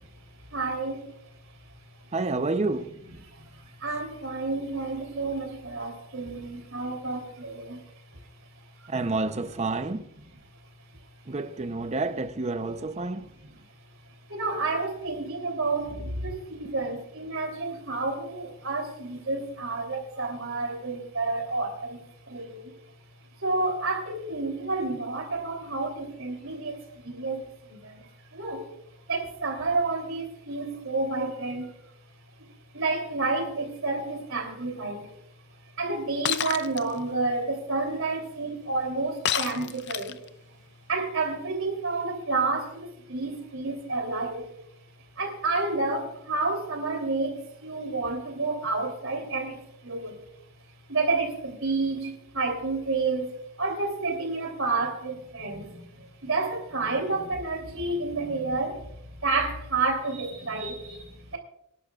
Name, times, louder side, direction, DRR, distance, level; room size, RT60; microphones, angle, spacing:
voice 1, 0.5-1.1 3.2-7.8 8.1-8.2 8.8-8.9 13.5-13.6 14.3-22.8 23.4-28.7 29.1-31.8 32.4-32.5 32.7-35.2 35.8-40.2 40.9-44.5 45.2-50.2 50.9-61.4, right 3 dB, 70° right, 3.4 m, -30 dB
voice 2, 2.1-2.9 8.9-10.0 11.3-13.3, right 3 dB, 30° right, 0.7 m, -29 dB
Shatter, 36.2-36.8 39.2-40.3, left 10 dB, 55° left, 0.6 m, -28 dB
25.5 x 11.5 x 2.4 m
head